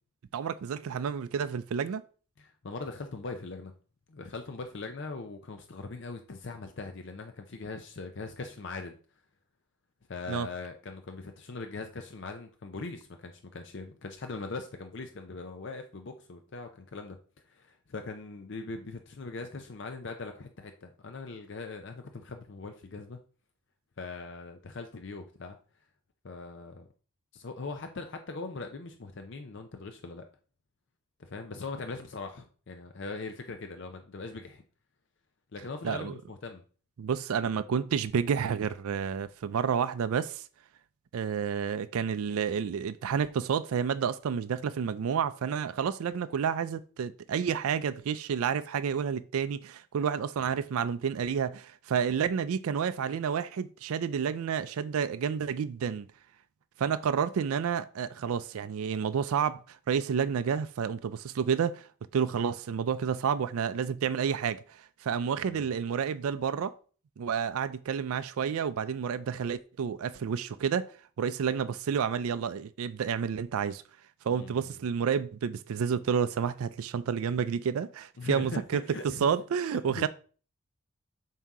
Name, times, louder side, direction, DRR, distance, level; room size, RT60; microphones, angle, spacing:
voice 1, 0.3-2.0 10.3-10.5 35.8-36.1 37.0-40.4 41.1-56.1 56.8-61.9 62.1-66.7 67.2-70.9 71.2-73.8 74.2-80.1, right 7 dB, 75° right, 0.4 m, -30 dB
voice 2, 2.4-3.7 4.1-8.9 10.1-17.2 17.5-23.2 24.0-25.6 26.2-26.9 27.3-30.3 31.3-34.6 35.5-36.6 65.4-65.7 74.3-74.8 78.2-78.6 78.9-79.3 79.7-80.1, left 3 dB, 55° left, 0.5 m, -41 dB
7.3 x 2.8 x 4.7 m
head